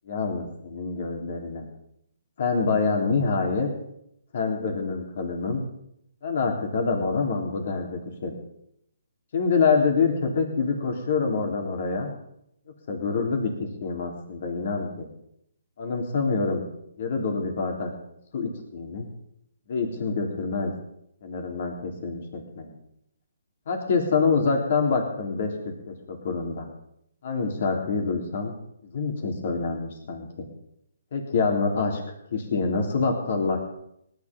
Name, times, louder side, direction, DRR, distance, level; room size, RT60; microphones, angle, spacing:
voice 1, 0.1-1.7 2.4-3.7 4.3-5.6 6.2-8.4 9.3-12.1 12.9-15.1 15.8-16.6 17.0-17.9 18.3-19.1 19.7-20.7 21.2-22.7 23.7-25.5 25.9-26.7 27.2-28.5 28.9-30.4 31.1-32.0 32.3-33.6, left 4 dB, 55° left, 3 dB, 3.8 m, -26 dB
18.5 x 10.5 x 5.5 m, 0.76 s
hypercardioid pair, 145°, 0 cm